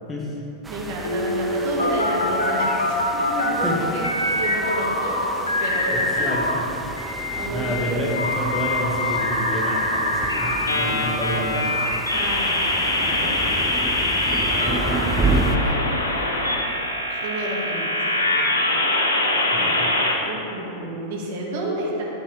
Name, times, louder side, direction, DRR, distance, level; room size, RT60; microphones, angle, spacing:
sound 1, 0.6-15.6, right 3 dB, 10° right, 0.6 m, -31 dB
voice 1, 0.7-4.0 4.4-6.4 7.3-8.1 12.1-13.4 14.9-16.0 17.1-18.3 20.2-22.0, right 1 dB, 55° right, -3 dB, 2.0 m, -31 dB
sound 2, 1.0-3.7 4.0-6.6 7.0-20.1, left 1 dB, 80° left, 1.1 m, -24 dB
voice 2, 5.9-6.6 7.5-11.7 14.2-15.6 19.5-19.9, equal, 20° left, -2 dB, 1.5 m, -29 dB
12.0 x 7.6 x 3.5 m, 3.0 s
figure-of-eight pair, 90°, 0 cm